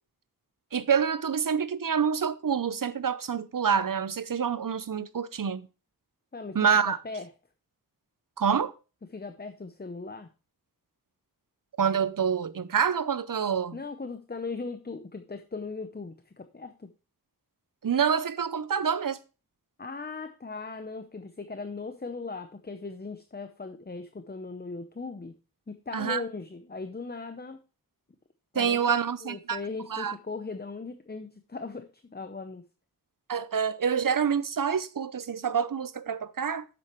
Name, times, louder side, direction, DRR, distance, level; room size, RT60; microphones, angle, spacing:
voice 1, 0.7-5.7 6.5-7.0 8.4-8.7 11.8-13.8 17.8-19.2 25.9-26.2 28.5-29.6 29.9-30.1 33.3-36.7, right 7 dB, 60° right, 0.7 m, -27 dB
voice 2, 6.8-7.3 9.1-10.3 13.7-16.9 19.8-25.3 25.7-27.6 28.5-29.0 29.2-32.6, left 4 dB, 25° left, 0.7 m, -38 dB
9.0 x 7.6 x 3.0 m
wide cardioid pair, 45°, 37 cm